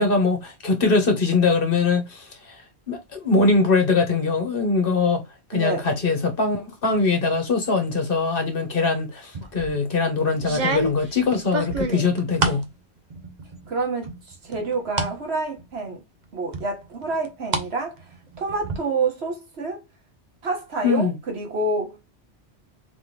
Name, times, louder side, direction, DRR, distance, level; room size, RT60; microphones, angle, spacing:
voice 1, 0.0-2.6 2.9-5.2 5.5-12.7 20.8-21.1, left 4 dB, 55° left, 1.5 m, -22 dB
voice 2, 5.5-5.9 13.7-16.0 16.3-18.0 18.4-19.8 20.4-22.1, right 3 dB, 75° right, 1.6 m, -28 dB
sound 1, 9.3-9.8 10.4-12.7 13.1-13.7 14.0-15.1 15.6-15.7 16.5-17.7 18.0-18.8, right 3 dB, 45° right, 0.9 m, -28 dB
4.0 x 3.6 x 3.3 m
omnidirectional pair, 1.1 m